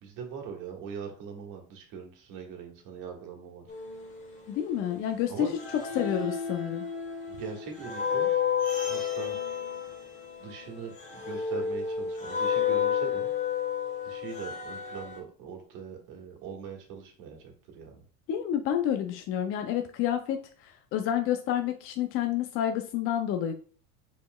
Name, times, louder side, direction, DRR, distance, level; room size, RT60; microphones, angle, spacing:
voice 1, 0.0-3.7 5.3-5.5 7.3-8.4 8.8-9.4 10.4-13.3 14.0-18.0, right 6 dB, 50° right, 2 dB, 1.6 m, -41 dB
sound 1, 3.7-5.2 5.5-15.2, left 7 dB, 20° left, 1.2 m, -31 dB
voice 2, 4.5-5.5 6.0-6.8 18.3-23.5, left 10 dB, 35° left, 6 dB, 0.4 m, -29 dB
5.5 x 4.2 x 2.2 m, 0.42 s
supercardioid pair, 125°, 40 cm